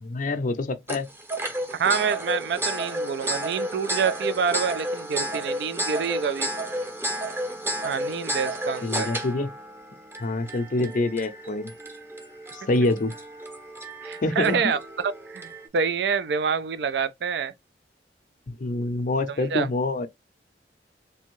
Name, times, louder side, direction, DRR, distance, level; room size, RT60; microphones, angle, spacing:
voice 1, 0.0-1.1 8.8-9.5 10.2-11.7 12.7-13.1 14.2-14.6 18.5-20.1, left 2 dB, 45° left, 0.5 m, -26 dB
sound 1, 0.9-15.7, right 1 dB, 15° right, 0.6 m, -32 dB
voice 2, 1.7-6.5 7.8-9.1 14.0-17.5 19.3-19.7, right 6 dB, 65° right, 0.3 m, -27 dB
3.3 x 2.7 x 3.0 m
head